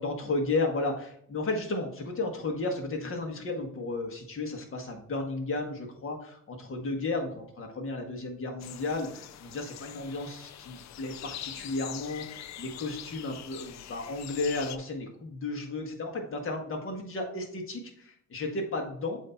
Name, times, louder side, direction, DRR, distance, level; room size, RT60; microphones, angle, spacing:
voice 1, 0.0-19.2, left 2 dB, 45° left, 2 dB, 1.5 m, -33 dB
sound 1, 8.6-14.8, left 11 dB, 65° left, 0.5 m, -44 dB
7.5 x 2.8 x 4.4 m, 0.65 s
cardioid pair, 90°, 30 cm